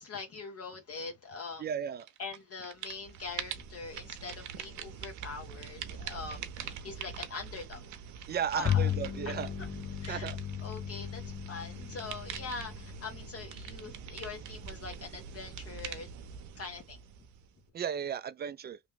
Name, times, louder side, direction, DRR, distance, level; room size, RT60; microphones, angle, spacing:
voice 1, 0.0-1.6 2.2-7.8 8.5-8.9 9.3-9.4 10.0-10.3 10.6-16.1 16.6-17.0, left 4 dB, 50° left, 1.0 m, -43 dB
voice 2, 1.6-2.1 8.3-9.5 10.1-10.4 17.7-18.8, right 8 dB, 35° right, 0.4 m, -35 dB
sound 1, 2.0-2.4 2.6-17.6, right 7 dB, 75° right, 0.7 m, -44 dB
Bowed string instrument, 8.6-14.3, left 10 dB, 30° left, 0.4 m, -36 dB
3.0 x 2.2 x 3.3 m
cardioid pair, 90°, 30 cm